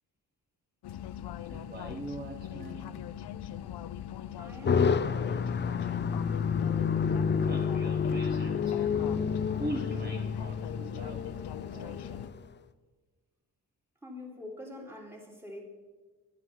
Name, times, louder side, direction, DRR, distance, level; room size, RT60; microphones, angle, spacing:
sound 1, 0.8-12.3, left 10 dB, 80° left, 0.6 m, -41 dB
voice 1, 1.5-3.1 5.3-5.4 7.4-9.1 9.6-11.3 11.6-12.0, right 1 dB, 25° right, 3 dB, 0.9 m, -41 dB
voice 2, 4.4-5.4 14.0-15.6, left 1 dB, 5° right, 1 dB, 2.5 m, -45 dB
sound 2, 4.6-12.4, left 6 dB, 30° left, 0.5 m, -29 dB
11.5 x 11.0 x 5.6 m, 1.4 s
wide cardioid pair, 125°, 39 cm